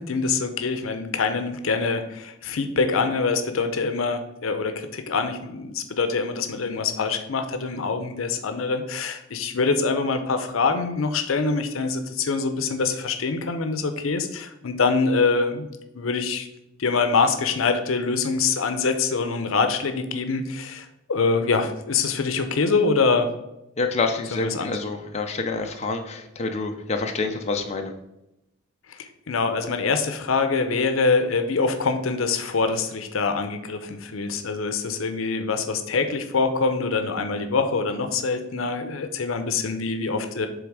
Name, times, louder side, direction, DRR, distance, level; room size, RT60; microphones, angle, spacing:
voice 1, 0.0-15.7 15.9-16.5 16.8-23.3 24.3-24.7 29.0-40.5, left 4 dB, 80° left, 8 dB, 0.6 m, -24 dB
voice 2, 23.8-27.9, left 3 dB, 35° left, 4 dB, 0.5 m, -27 dB
7.1 x 3.5 x 4.7 m, 0.92 s
head